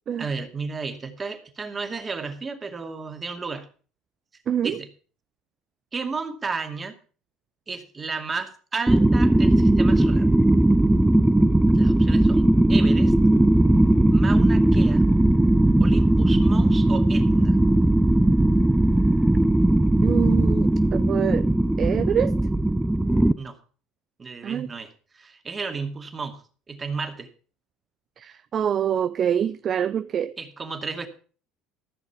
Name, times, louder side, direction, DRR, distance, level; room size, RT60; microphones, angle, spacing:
voice 1, 0.2-3.7 4.3-4.9 5.9-7.0 7.7-10.3 11.7-13.1 14.1-15.1 15.8-17.6 23.4-23.6 24.2-24.9 25.1-26.4 26.7-27.3 30.4-31.1, right 4 dB, 30° right, 2.3 m, -33 dB
voice 2, 4.5-4.8 20.0-21.5 21.8-22.3 24.4-24.7 28.2-30.4, right 8 dB, 45° right, 0.5 m, -25 dB
sound 1, 8.9-23.3, right 1 dB, 10° right, 0.7 m, -18 dB
15.0 x 6.4 x 7.0 m
hypercardioid pair, 80°, 0 cm